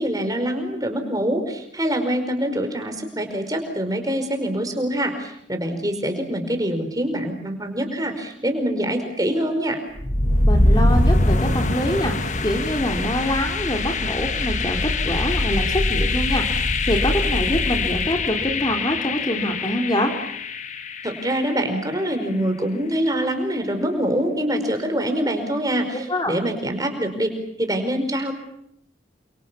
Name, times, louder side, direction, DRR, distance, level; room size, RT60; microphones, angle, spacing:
voice 1, 0.0-9.8 21.0-27.3 27.6-28.3, right 1 dB, 20° right, 6 dB, 5.0 m, -25 dB
sound 1, 10.0-21.8, left 2 dB, 40° left, 1.6 m, -23 dB
voice 2, 10.4-20.1 26.1-26.3, equal, 25° left, 3 dB, 3.2 m, -25 dB
30.0 x 26.5 x 7.1 m, 0.72 s
head